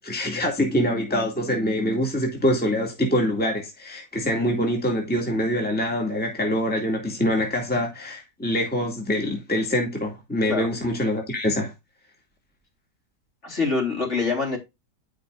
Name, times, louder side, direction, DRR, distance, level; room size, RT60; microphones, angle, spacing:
voice 1, 0.0-11.7, equal, 5° left, 2.0 m, -25 dB
voice 2, 13.4-14.6, left 4 dB, 40° left, 4.0 m, -25 dB
14.0 x 5.4 x 2.5 m
omnidirectional pair, 1.8 m